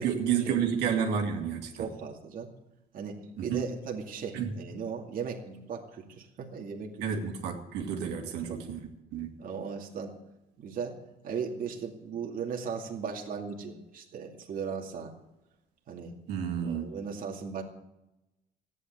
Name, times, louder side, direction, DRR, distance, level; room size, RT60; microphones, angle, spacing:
voice 1, 0.0-1.9 3.4-3.6 4.3-4.5 7.0-9.3 16.3-16.9, right 7 dB, 90° right, 1 dB, 2.3 m, -30 dB
voice 2, 1.7-2.5 2.9-7.3 8.5-8.6 9.4-10.1 10.6-11.0 11.2-15.1 15.9-16.1 16.6-17.6, right 6 dB, 55° right, 1 dB, 2.3 m, -37 dB
14.5 x 9.8 x 8.2 m, 0.96 s
cardioid pair, 110°, 17 cm